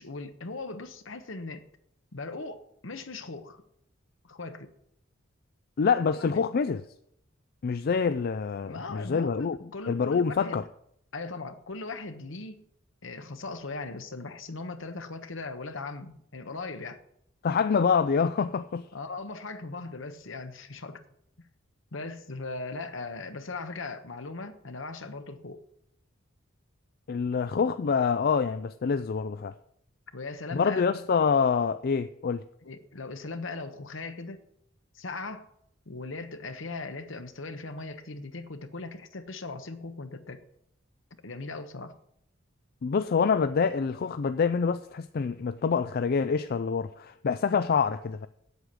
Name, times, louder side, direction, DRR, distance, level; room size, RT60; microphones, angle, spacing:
voice 1, 0.0-1.6 2.1-3.6 4.2-4.7 6.1-6.4 8.7-10.6 11.1-12.7 13.0-17.0 18.9-21.0 21.9-25.6 30.1-30.9 32.6-34.4 34.9-35.5 35.9-40.4 41.2-42.0, left 3 dB, 70° left, 1.2 m, -39 dB
voice 2, 5.8-6.8 7.6-9.6 9.9-10.6 17.4-18.9 27.1-29.5 30.5-32.4 42.8-48.3, left 5 dB, 50° left, 0.4 m, -26 dB
8.2 x 7.7 x 8.3 m
head